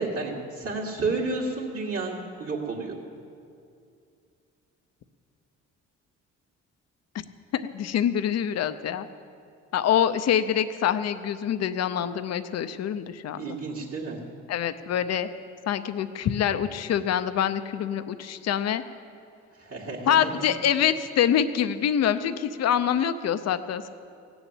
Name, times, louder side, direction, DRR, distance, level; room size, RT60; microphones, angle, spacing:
voice 1, 0.0-2.9 13.4-14.2 19.6-20.5, right 3 dB, 45° right, -6 dB, 2.2 m, -31 dB
voice 2, 7.5-9.1 9.7-13.4 14.5-15.3 15.7-18.8 20.1-23.9, left 9 dB, 55° left, 11 dB, 0.7 m, -25 dB
16.5 x 7.1 x 9.0 m, 2.4 s
cardioid pair, 90°, 30 cm